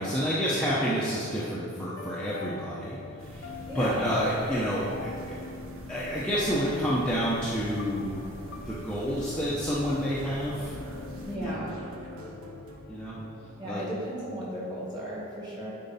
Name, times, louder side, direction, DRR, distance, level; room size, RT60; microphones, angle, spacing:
voice 1, 0.0-3.0 3.2-5.4 5.9-8.2 8.7-10.7 11.3-11.6 12.9-13.1 13.6-13.8, equal, 5° left, -9 dB, 0.8 m, -29 dB
sound 1, 1.3-12.7, left 3 dB, 60° left, 0.6 m, -43 dB
sound 2, 3.2-11.4, right 1 dB, 70° right, 0.6 m, -45 dB
voice 2, 3.7-4.1 11.2-11.7 13.6-15.7, equal, 20° right, -6 dB, 1.8 m, -35 dB
sound 3, 5.0-13.5, equal, 90° right, 1.0 m, -50 dB
10.5 x 4.5 x 4.2 m, 2.5 s
head